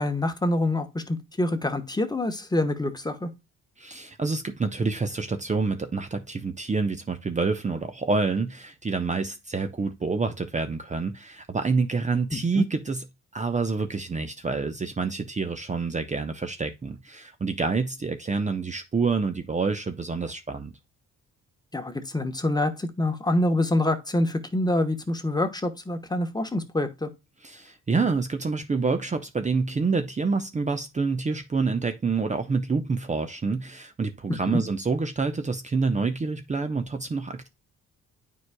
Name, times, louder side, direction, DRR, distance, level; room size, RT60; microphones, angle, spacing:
voice 1, 0.0-3.3 12.3-12.6 21.7-27.1 34.4-34.6, left 1 dB, 15° left, 1.1 m, -26 dB
voice 2, 3.8-13.0 13.3-20.7 27.4-37.5, right 4 dB, 25° right, 0.8 m, -27 dB
9.4 x 4.8 x 2.2 m
cardioid pair, 90°, 30 cm